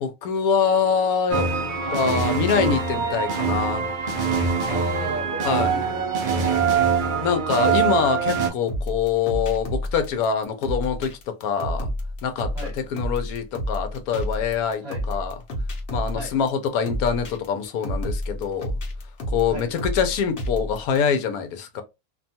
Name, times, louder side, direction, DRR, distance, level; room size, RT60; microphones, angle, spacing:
voice 1, 0.0-1.5 1.9-3.9 5.4-5.7 7.2-11.1 11.4-11.9 12.2-12.5 12.8-15.3 15.9-18.7 19.3-21.8, left 6 dB, 85° left, 1.1 m, -24 dB
sound 1, 1.3-8.5, right 5 dB, 75° right, 0.4 m, -23 dB
voice 2, 1.8-2.1 4.7-6.3 12.5-12.8 14.8-15.0 16.1-16.3 19.5-19.7, right 3 dB, 50° right, 1.0 m, -35 dB
sound 2, 8.7-21.0, equal, 50° left, 0.9 m, -30 dB
2.7 x 2.2 x 2.7 m
omnidirectional pair, 1.5 m